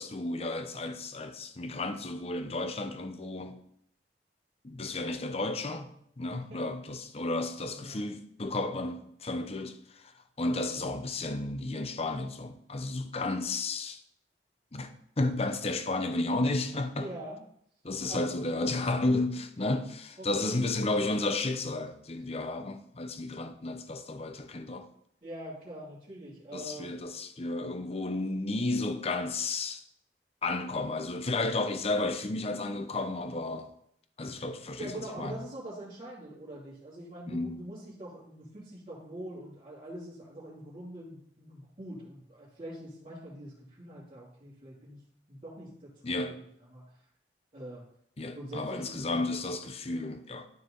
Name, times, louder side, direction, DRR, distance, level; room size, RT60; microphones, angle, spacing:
voice 1, 0.0-3.6 4.6-14.0 14.7-17.1 17.8-24.9 26.5-29.8 30.4-33.7 34.2-35.4 37.3-37.6 46.0-46.5 48.2-50.5, left 2 dB, 35° left, 0.7 m, -32 dB
voice 2, 7.7-8.0 17.0-17.4 18.1-18.3 20.2-20.6 25.2-26.9 34.8-45.0 45.3-46.3 46.7-47.0 47.5-47.8 48.3-49.0 49.9-50.0, right 1 dB, 35° right, 2.7 m, -44 dB
12.5 x 4.7 x 3.9 m
head